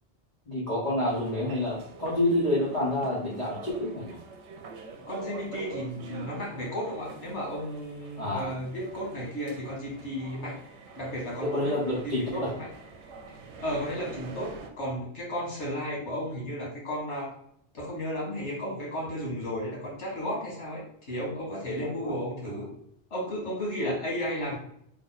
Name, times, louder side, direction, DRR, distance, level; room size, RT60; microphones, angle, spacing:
voice 1, 0.5-4.2 8.2-8.6 11.4-12.5 22.0-22.1 23.8-23.9, left 1 dB, 40° left, -7 dB, 0.9 m, -28 dB
sound 1, 1.1-14.7, right 4 dB, 80° right, 0.9 m, -46 dB
voice 2, 5.1-10.6 10.9-11.7 12.0-12.7 13.6-17.3 17.7-20.8 21.1-22.7 23.1-24.6, equal, 85° left, -4 dB, 1.7 m, -34 dB
3.5 x 2.1 x 3.9 m, 0.70 s
omnidirectional pair, 1.2 m